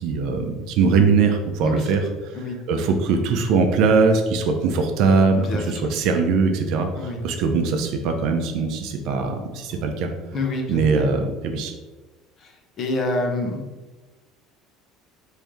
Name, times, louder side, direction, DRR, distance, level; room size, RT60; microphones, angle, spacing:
voice 1, 0.0-2.0 2.7-10.1 10.7-11.7, right 4 dB, 65° right, 5 dB, 0.5 m, -21 dB
voice 2, 10.3-10.8 12.4-12.5 12.8-13.6, left 2 dB, 40° left, 2 dB, 0.7 m, -26 dB
3.2 x 2.6 x 3.5 m, 1.2 s
supercardioid pair, 125°, 0 cm